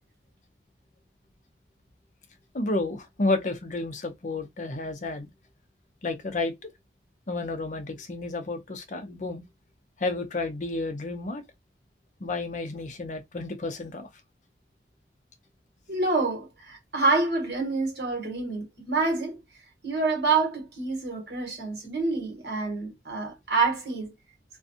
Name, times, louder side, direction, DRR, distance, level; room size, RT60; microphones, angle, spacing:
voice 1, 2.5-5.3 6.0-6.7 7.3-9.4 10.0-11.4 12.2-14.1, left 2 dB, 45° left, 0.5 m, -31 dB
voice 2, 15.9-19.4 19.8-24.1, right 3 dB, 65° right, 1.3 m, -27 dB
2.5 x 2.3 x 2.6 m
head